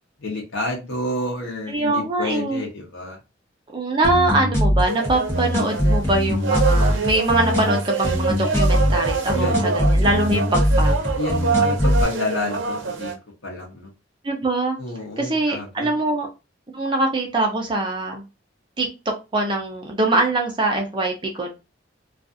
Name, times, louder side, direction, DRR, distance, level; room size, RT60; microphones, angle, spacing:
voice 1, 0.2-3.2 9.3-9.6 11.1-13.9 14.8-15.9, left 1 dB, 85° left, 0 dB, 0.8 m, -29 dB
voice 2, 1.7-2.6 3.7-11.0 14.2-14.8 15.2-16.3 16.7-18.2 18.8-18.9 19.3-21.5, right 2 dB, 25° right, 1 dB, 0.5 m, -23 dB
sound 1, 4.0-12.0, equal, 15° left, 0.9 m, -21 dB
sound 2, 4.9-13.1, right 4 dB, 80° right, 0.6 m, -26 dB
2.5 x 2.4 x 2.4 m, 0.27 s
head